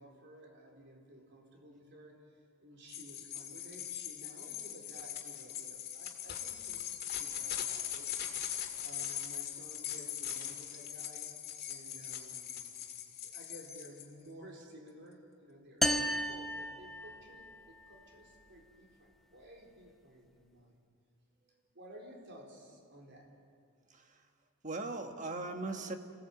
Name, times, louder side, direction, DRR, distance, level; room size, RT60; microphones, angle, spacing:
voice 1, 0.0-8.1 8.8-11.4 11.7-12.6 13.2-20.8 21.7-23.3, right 1 dB, 50° right, 0 dB, 4.1 m, -54 dB
sound 1, 2.9-14.0, left 10 dB, 45° left, 2.3 m, -41 dB
sound 2, 15.8-17.5, equal, ahead, 0.6 m, -33 dB
voice 2, 23.9-24.3 24.6-25.9, right 2 dB, 35° right, 5 dB, 1.5 m, -39 dB
26.5 x 16.5 x 8.3 m, 2.4 s
head